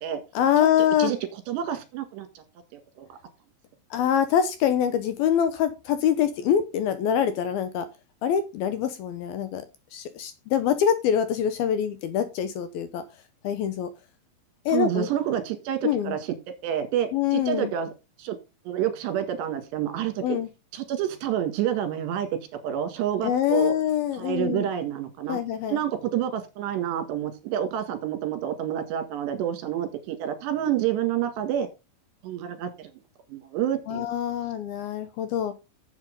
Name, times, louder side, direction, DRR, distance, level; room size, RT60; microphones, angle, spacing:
voice 1, 0.4-1.1 3.9-7.9 8.2-9.6 9.9-13.0 13.4-13.9 14.7-15.1 15.8-16.1 17.1-17.7 20.2-20.5 23.2-24.7 25.3-25.8 33.9-35.5, left 9 dB, 75° left, 11 dB, 2.4 m, -24 dB
voice 2, 1.5-2.4 2.7-3.1 14.7-15.8 16.0-16.3 16.6-17.9 18.2-18.4 18.7-20.4 20.7-22.3 22.6-23.7 24.2-25.4 25.7-31.7 32.2-32.9 33.3-34.1, right 10 dB, 75° right, 8 dB, 3.9 m, -28 dB
8.8 x 7.9 x 5.2 m, 0.28 s
omnidirectional pair, 5.0 m